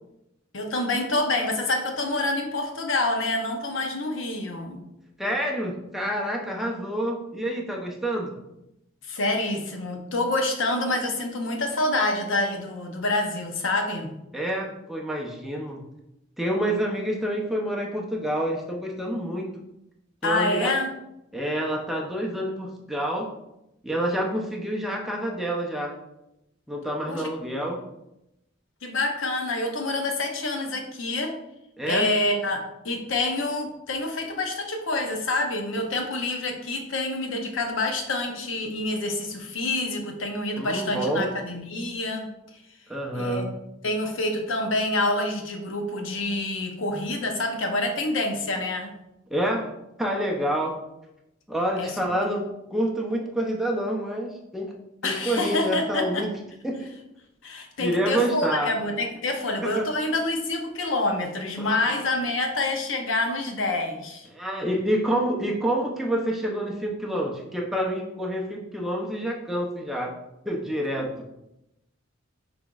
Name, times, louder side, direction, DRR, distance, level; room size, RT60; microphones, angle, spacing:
voice 1, 0.5-4.8 9.0-14.1 20.2-20.9 27.1-27.2 28.8-31.4 31.9-42.3 43.1-43.4 43.8-48.9 51.8-52.0 55.0-56.2 57.4-64.3, left 2 dB, 75° left, 4 dB, 0.8 m, -27 dB
voice 2, 5.2-8.3 14.3-15.8 16.4-19.5 20.2-20.7 21.3-23.3 23.8-25.9 26.7-27.8 31.8-32.1 40.6-41.3 42.9-43.5 49.3-49.7 50.0-50.8 51.5-54.8 55.0-56.3 56.6-56.9 57.8-58.7 59.6-59.8 61.6-62.0 64.3-70.1 70.4-71.1, right 1 dB, ahead, -1 dB, 0.6 m, -28 dB
5.9 x 3.5 x 2.4 m, 0.87 s
head